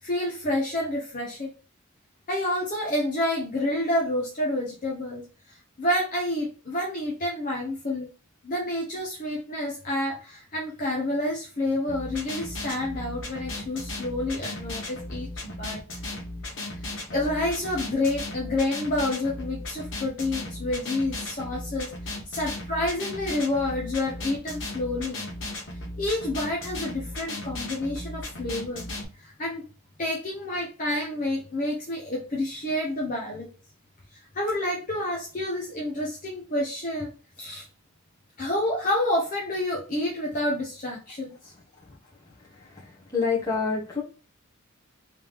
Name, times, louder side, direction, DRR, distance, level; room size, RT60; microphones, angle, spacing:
voice 1, 0.0-1.5 2.3-8.1 8.4-15.8 16.8-25.2 26.0-28.9 29.2-29.6 30.0-33.5 34.3-37.1 37.4-37.6 38.4-41.5, left 1 dB, 40° left, -2 dB, 0.8 m, -29 dB
sound 1, 11.9-29.0, left 1 dB, 65° left, 1.1 m, -36 dB
voice 2, 43.1-44.0, left 5 dB, 15° left, -5 dB, 1.3 m, -26 dB
3.4 x 3.1 x 3.5 m, 0.35 s
head